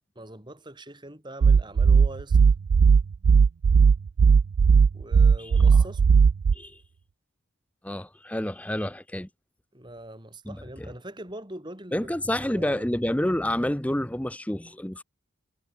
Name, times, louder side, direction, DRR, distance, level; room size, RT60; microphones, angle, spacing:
voice 1, 0.1-2.4 4.9-6.0 9.7-12.1 12.5-12.9, right 1 dB, 20° right, 2.8 m, -42 dB
sound 1, 1.4-6.5, right 5 dB, 85° right, 0.4 m, -17 dB
voice 2, 5.4-5.8 6.5-6.8 7.8-9.3 10.5-10.9 11.9-15.0, left 1 dB, 5° left, 0.7 m, -29 dB
head